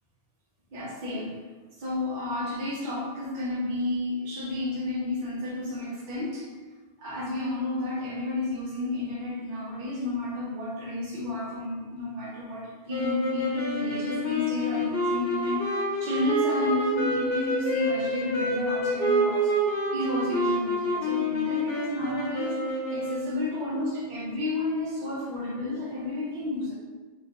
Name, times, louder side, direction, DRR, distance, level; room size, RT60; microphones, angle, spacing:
voice 1, 0.7-1.3 1.8-6.5 7.0-19.5 19.9-22.6 22.9-26.7, left 2 dB, 50° right, -6 dB, 0.8 m, -31 dB
sound 1, 12.9-23.4, equal, 65° left, 0.9 m, -28 dB
3.0 x 2.5 x 3.5 m, 1.3 s
omnidirectional pair, 1.1 m